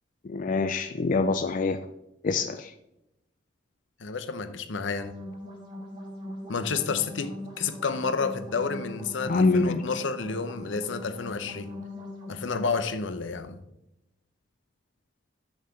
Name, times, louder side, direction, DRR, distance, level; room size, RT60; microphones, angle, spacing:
voice 1, 0.2-1.8 2.2-2.7 9.3-9.8, left 3 dB, 40° left, 8 dB, 0.4 m, -25 dB
voice 2, 4.0-5.1 6.5-11.7 12.3-13.6, left 5 dB, 70° left, 10 dB, 0.7 m, -30 dB
sound 1, 4.8-12.8, left 1 dB, 25° right, 2.6 m, -41 dB
6.4 x 5.5 x 5.7 m, 0.88 s
head